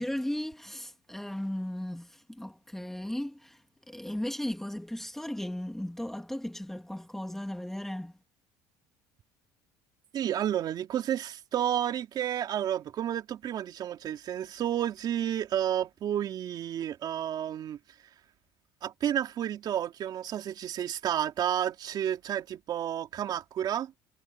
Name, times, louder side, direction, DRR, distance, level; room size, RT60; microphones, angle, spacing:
voice 1, 0.0-3.6 3.9-8.1, left 1 dB, 5° left, 2.0 m, -36 dB
voice 2, 10.1-17.8 18.8-23.9, right 10 dB, 45° right, 2.9 m, -31 dB
cardioid pair, 130°, 10 cm